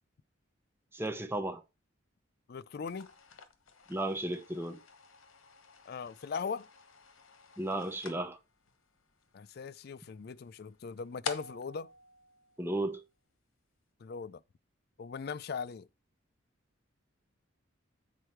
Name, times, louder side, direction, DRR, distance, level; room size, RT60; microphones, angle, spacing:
voice 1, 0.9-1.6 3.9-4.8 7.6-8.4 12.6-13.0, right 1 dB, 10° right, 0.8 m, -34 dB
voice 2, 2.5-3.1 5.9-6.7 9.3-11.9 14.0-14.4 15.0-15.9, left 5 dB, 50° left, 0.4 m, -39 dB
sound 1, 2.8-13.1, left 5 dB, 85° left, 1.1 m, -49 dB
8.2 x 4.5 x 4.5 m
head